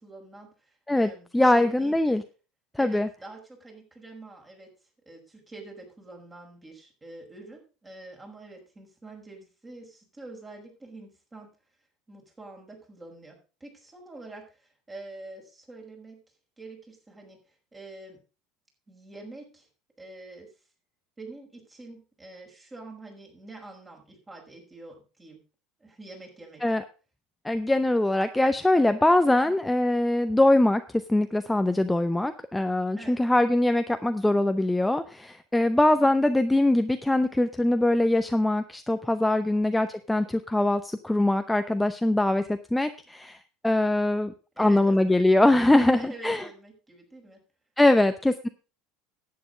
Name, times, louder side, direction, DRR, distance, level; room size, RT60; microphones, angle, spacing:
voice 1, 0.0-2.2 2.8-4.7 5.1-11.5 12.1-16.2 16.6-18.2 18.9-19.7 20.0-20.5 21.2-25.4 25.8-26.6 29.2-29.5 32.9-33.2 35.6-36.1 44.6-45.2 45.8-47.4 47.9-48.1, right 2 dB, 20° right, 1 dB, 5.3 m, -46 dB
voice 2, 0.9-2.2 2.8-3.1 26.6-26.8 27.4-30.8 31.1-43.4 43.6-46.4 47.8-48.5, left 1 dB, 5° left, 9 dB, 0.8 m, -22 dB
11.0 x 8.8 x 5.1 m, 0.34 s
hypercardioid pair, 75°, 0 cm